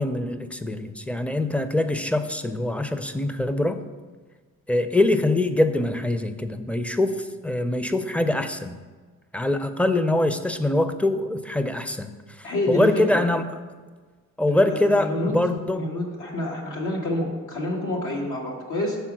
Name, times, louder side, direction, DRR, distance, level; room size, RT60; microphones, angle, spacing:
voice 1, 0.0-3.8 4.7-8.8 9.3-12.1 12.4-13.4 14.4-15.9, left 1 dB, 5° left, 10 dB, 0.4 m, -23 dB
voice 2, 12.4-12.9 13.1-13.3 14.5-15.4 15.7-19.0, left 1 dB, 85° left, -2 dB, 1.5 m, -28 dB
6.9 x 4.1 x 6.0 m, 1.4 s
cardioid pair, 90°, 30 cm